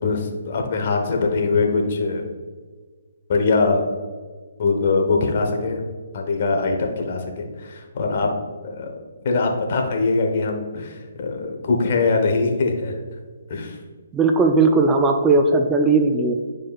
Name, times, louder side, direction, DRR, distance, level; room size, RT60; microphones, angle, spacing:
voice 1, 0.0-2.3 3.3-3.9 4.6-5.8 6.1-8.3 8.6-8.9 9.2-13.0 13.5-13.8, left 3 dB, 50° left, 2 dB, 1.1 m, -22 dB
voice 2, 14.1-16.3, right 3 dB, 15° right, 4 dB, 0.4 m, -17 dB
9.3 x 4.8 x 2.4 m, 1.5 s
hypercardioid pair, 140°, 0 cm